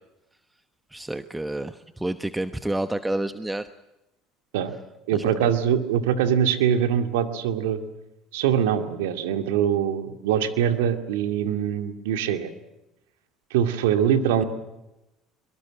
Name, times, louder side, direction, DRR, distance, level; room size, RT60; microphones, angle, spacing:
voice 1, 0.9-3.7 5.1-5.5, right 1 dB, 10° right, 11 dB, 1.1 m, -29 dB
voice 2, 5.1-7.8 8.3-12.5 13.5-14.4, right 9 dB, 85° right, 8 dB, 2.3 m, -23 dB
23.5 x 22.5 x 7.7 m, 0.96 s
supercardioid pair, 90°, 0 cm